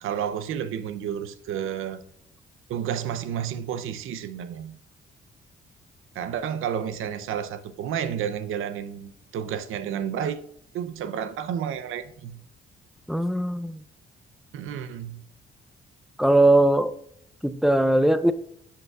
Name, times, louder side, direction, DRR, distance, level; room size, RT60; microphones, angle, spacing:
voice 1, 0.0-2.0 2.7-4.8 6.1-10.4 10.7-12.4 14.5-15.2, right 9 dB, 80° right, 0.6 m, -31 dB
voice 2, 13.1-13.7 16.2-16.9 17.4-18.3, right 1 dB, ahead, 0.5 m, -20 dB
11.5 x 5.6 x 2.3 m
cardioid pair, 75°, 21 cm